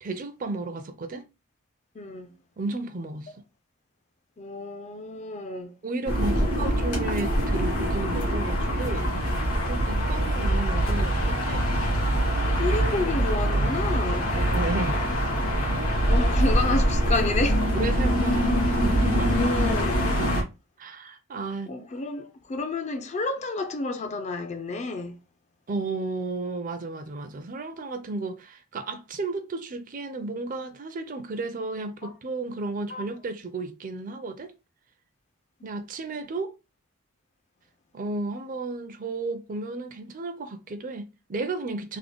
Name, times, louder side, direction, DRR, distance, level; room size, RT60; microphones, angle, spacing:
voice 1, 0.0-1.3 2.6-3.3 5.8-9.1 9.7-11.7 14.3-15.0 16.0-16.2 17.7-19.4 20.2-20.3 20.8-21.9 25.7-34.5 35.6-36.5 37.9-42.0, right 3 dB, 35° right, 0.5 m, -33 dB
voice 2, 2.0-2.3 4.4-5.7 12.6-14.3 16.0-17.7 19.3-20.1 21.7-25.2 32.0-32.1 32.9-33.0, left 3 dB, 30° left, 0.4 m, -30 dB
sound 1, 6.1-20.4, equal, 90° left, 1.5 m, -24 dB
3.7 x 2.1 x 3.4 m
head